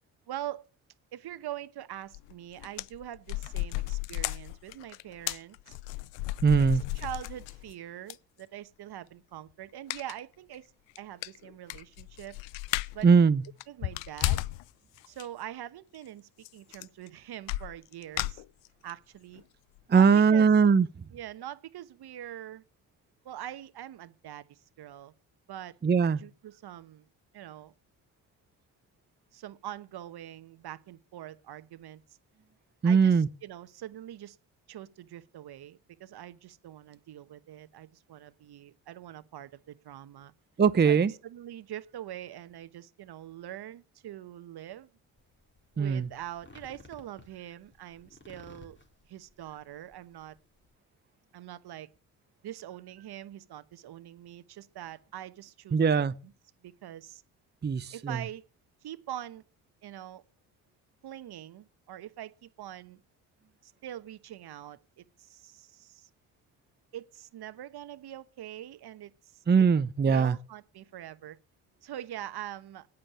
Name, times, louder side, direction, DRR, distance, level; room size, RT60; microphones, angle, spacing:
voice 1, 0.3-0.6 1.1-5.8 6.6-6.7 6.9-10.7 11.0-12.4 12.9-13.1 13.7-14.4 15.1-18.4 18.8-19.4 19.9-20.6 21.1-22.6 23.2-25.1 25.5-25.7 26.2-27.1 27.3-27.7 29.3-32.0 32.8-34.4 34.7-40.3 40.8-44.9 45.7-48.8 49.0-50.4 51.3-51.9 52.4-56.3 56.6-57.2 57.9-58.4 58.8-59.4 59.8-60.2 61.0-63.0 63.6-66.1 66.9-69.4 70.0-71.4 71.8-72.9, right 12 dB, 60° right, 1.2 m, -43 dB
sound 1, 2.1-2.3 2.6-7.7 8.1-8.2 9.9-10.2 10.5-10.6 11.0-11.1 11.2-13.1 13.4-14.6 15.0-15.3 16.4-16.5 16.7-17.1 17.5-18.9 19.4-19.5 19.8-19.9, left 18 dB, 75° left, 0.6 m, -34 dB
voice 2, 6.4-6.8 13.0-13.4 19.9-20.9 25.8-26.2 32.8-33.3 40.6-41.1 45.8-46.1 55.7-56.1 57.6-58.2 69.5-70.3, right 6 dB, 25° right, 0.7 m, -21 dB
sound 2, 45.2-50.7, left 2 dB, 25° left, 4.2 m, -56 dB
9.5 x 8.8 x 9.8 m
hypercardioid pair, 50°, 45 cm